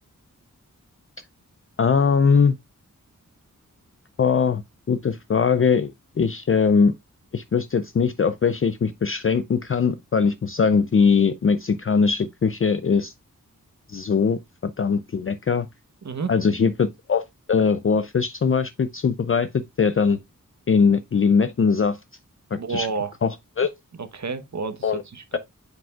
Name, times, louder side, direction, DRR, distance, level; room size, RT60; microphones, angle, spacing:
voice 1, 1.8-2.5 4.2-4.6 4.9-6.9 7.3-13.1 13.9-15.7 16.3-17.2 17.5-19.5 19.8-20.2 20.7-22.0 22.7-22.9 23.2-23.7 24.8-25.0 25.3-25.4, left 5 dB, 40° left, 0.4 m, -21 dB
voice 2, 22.5-23.1 24.0-25.4, right 5 dB, 55° right, 1.0 m, -30 dB
9.2 x 5.1 x 2.3 m
wide cardioid pair, 75°, 33 cm